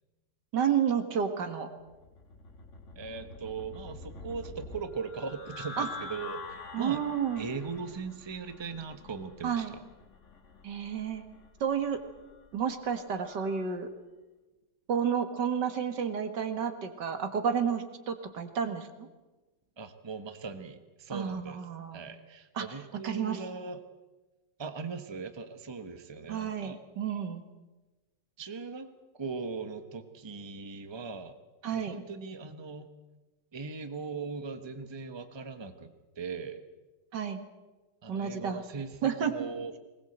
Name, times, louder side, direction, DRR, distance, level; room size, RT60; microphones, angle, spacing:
voice 1, 0.5-1.7 5.8-5.9 6.7-7.5 9.4-9.7 10.6-11.2 11.6-12.0 12.5-13.9 14.9-19.1 21.1-22.0 22.6-22.8 23.0-23.4 26.3-27.4 31.6-32.0 37.1-37.4 38.1-38.6 39.0-39.3, right 7 dB, 75° right, 8 dB, 2.3 m, -31 dB
sound 1, 1.9-13.7, left 3 dB, 45° left, 1.8 m, -47 dB
voice 2, 2.9-7.0 7.4-9.8 19.8-21.6 21.9-23.8 24.6-26.8 28.4-28.9 29.1-31.4 31.7-32.9 33.5-36.6 38.0-39.7, right 4 dB, 20° right, 8 dB, 1.0 m, -39 dB
20.5 x 19.5 x 8.0 m, 1.2 s
omnidirectional pair, 1.9 m